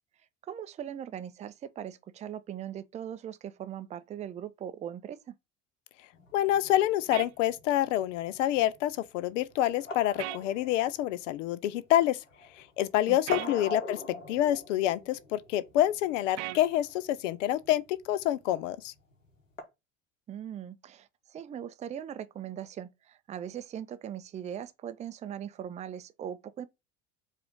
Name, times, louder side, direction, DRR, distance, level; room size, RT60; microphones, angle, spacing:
voice 1, 0.5-5.3 13.1-13.5 20.3-26.7, right 9 dB, 20° right, 0.4 m, -40 dB
sound 1, 6.1-19.6, left 2 dB, 90° left, 0.9 m, -43 dB
voice 2, 6.3-12.2 12.6-14.0 14.3-18.9, left 13 dB, 70° left, 0.5 m, -27 dB
sound 2, 7.1-7.3 10.2-10.4 13.3-13.5 16.4-16.6, right 16 dB, 65° right, 0.5 m, -36 dB
4.8 x 2.5 x 4.4 m
figure-of-eight pair, 55°, 38 cm